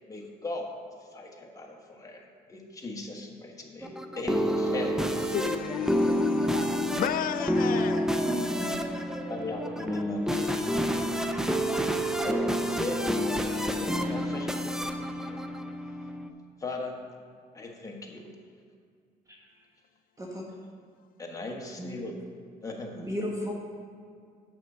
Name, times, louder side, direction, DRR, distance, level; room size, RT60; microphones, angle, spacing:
voice 1, 0.1-0.7 1.0-5.1 9.3-11.5 12.2-13.3 13.6-14.9 15.2-15.4 16.6-17.0 17.5-18.3 21.2-22.2 22.6-23.1, left 2 dB, 20° left, 1.4 m, -38 dB
sound 1, 3.8-16.3, equal, 5° right, 0.5 m, -29 dB
sound 2, 3.9-6.7 7.7-10.7, right 2 dB, 40° right, 1.7 m, -43 dB
voice 2, 5.3-8.3, left 10 dB, 60° left, 0.5 m, -33 dB
voice 3, 8.2-9.0 20.2-20.4 21.8-22.0 23.0-23.5, equal, 20° right, 1.1 m, -35 dB
7.4 x 6.4 x 5.5 m
cardioid pair, 110°, 17 cm